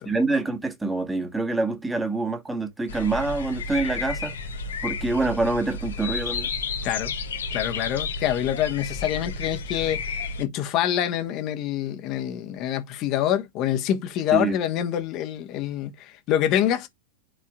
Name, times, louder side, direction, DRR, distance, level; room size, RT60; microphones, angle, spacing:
voice 1, 0.0-4.4 4.8-6.5 14.3-14.6, right 3 dB, 10° right, 1.7 m, -26 dB
sound 1, 2.9-10.5, left 4 dB, 65° left, 1.1 m, -32 dB
voice 2, 6.8-7.2 7.5-16.9, left 11 dB, 40° left, 1.4 m, -26 dB
11.5 x 4.2 x 2.5 m
figure-of-eight pair, 90°, 0 cm